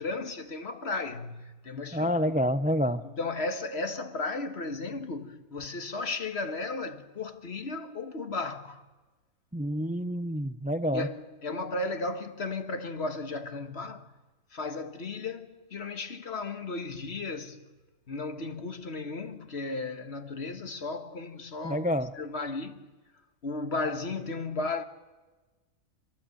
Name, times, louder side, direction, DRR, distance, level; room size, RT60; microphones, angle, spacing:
voice 1, 0.0-2.3 3.0-8.9 10.9-14.1 14.5-17.7 18.1-22.9 23.4-24.8, left 3 dB, 55° left, 1.7 m, -35 dB
voice 2, 1.9-3.0 9.5-11.1 21.6-22.1, equal, 10° right, 0.5 m, -28 dB
26.5 x 23.0 x 7.9 m
omnidirectional pair, 1.3 m